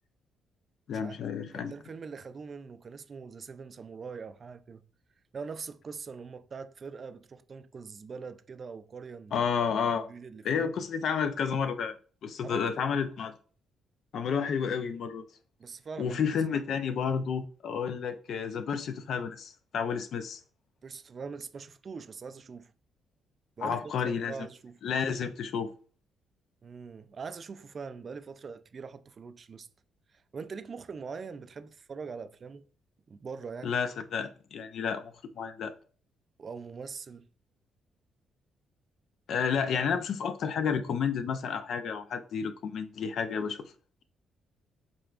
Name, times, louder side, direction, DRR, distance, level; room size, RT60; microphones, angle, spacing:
voice 1, 0.9-1.7 9.3-10.0 10.4-11.9 12.2-13.3 14.1-15.2 16.0-20.4 23.6-24.3 24.8-25.7 33.6-35.7 39.3-43.7, left 6 dB, 65° left, 0.5 m, -31 dB
voice 2, 1.5-4.8 5.3-9.4 10.0-10.7 12.4-12.6 15.6-16.2 20.8-22.7 23.6-23.9 24.2-24.8 26.6-29.7 30.1-32.7 33.1-33.7 36.4-37.3, right 5 dB, 45° right, 0.3 m, -42 dB
5.2 x 3.4 x 2.4 m
cardioid pair, 90°, 0 cm